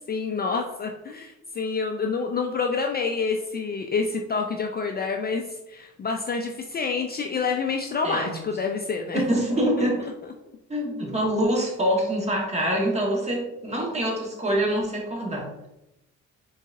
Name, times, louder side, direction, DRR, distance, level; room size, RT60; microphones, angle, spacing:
voice 1, 0.1-9.2, left 4 dB, 35° left, 3 dB, 0.4 m, -28 dB
voice 2, 8.0-8.4 9.1-10.0 10.7-15.5, right 1 dB, 20° right, -2 dB, 1.3 m, -25 dB
3.9 x 3.9 x 2.5 m, 0.91 s
cardioid pair, 90°, 30 cm